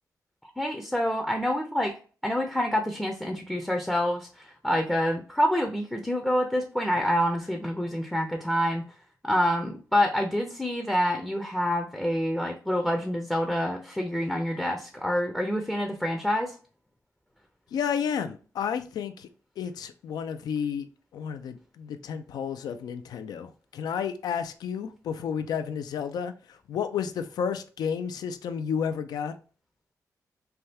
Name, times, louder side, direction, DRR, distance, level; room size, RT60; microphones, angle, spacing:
voice 1, 0.6-1.9 2.2-8.8 9.2-16.6, equal, 5° left, 3 dB, 0.5 m, -27 dB
voice 2, 17.7-19.3 19.6-20.9 21.1-29.3, left 7 dB, 90° left, 9 dB, 0.4 m, -31 dB
3.3 x 2.3 x 2.7 m, 0.39 s
cardioid pair, 100°, 7 cm